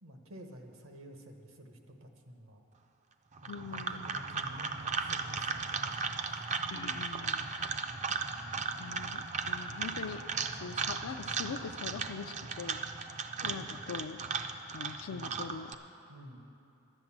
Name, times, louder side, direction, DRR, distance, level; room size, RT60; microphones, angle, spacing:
voice 1, 0.0-2.6 3.4-6.0 13.3-13.8 15.1-15.4 16.1-16.4, equal, 70° right, 4 dB, 1.1 m, -50 dB
sound 1, 3.4-15.7, right 5 dB, 35° right, 0.5 m, -36 dB
voice 2, 3.5-4.2 6.7-7.5 8.6-10.2 10.5-12.8 13.4-14.2 14.7-15.7, left 5 dB, 70° left, 8 dB, 0.4 m, -43 dB
11.0 x 9.1 x 7.3 m, 2.8 s
head